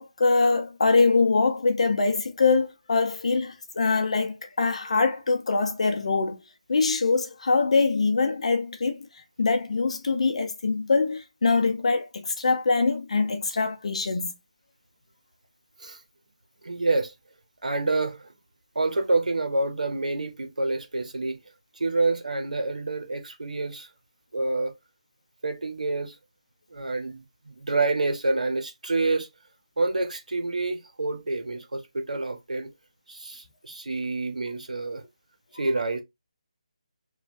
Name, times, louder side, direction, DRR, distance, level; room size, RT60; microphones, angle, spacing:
voice 1, 0.0-6.4 6.7-9.1 9.4-14.3, left 4 dB, 55° left, 0.5 m, -23 dB
voice 2, 16.6-17.1 17.6-18.3 18.7-21.4 21.8-23.9 24.3-24.7 25.4-26.2 26.7-29.3 29.8-32.7 33.1-35.0 35.6-36.0, right 3 dB, 85° right, 0.9 m, -27 dB
3.1 x 2.2 x 2.5 m
figure-of-eight pair, 165°, 4 cm